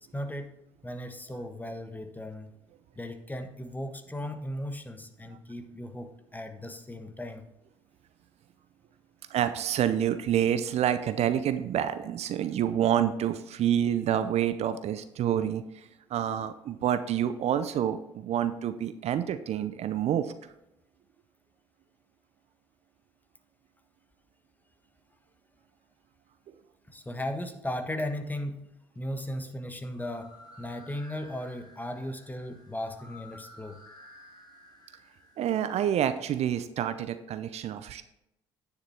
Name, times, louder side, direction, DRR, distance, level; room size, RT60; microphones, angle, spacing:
voice 1, 0.1-2.5 2.9-7.4 26.9-30.3 30.6-33.8, left 1 dB, 15° left, 7 dB, 1.4 m, -37 dB
voice 2, 9.3-15.6 16.1-20.3 35.4-38.0, right 10 dB, 55° right, 12 dB, 0.7 m, -28 dB
sound 1, 29.9-35.7, left 1 dB, 30° left, 3.7 m, -53 dB
9.7 x 6.9 x 4.3 m, 0.86 s
hypercardioid pair, 55°, 13 cm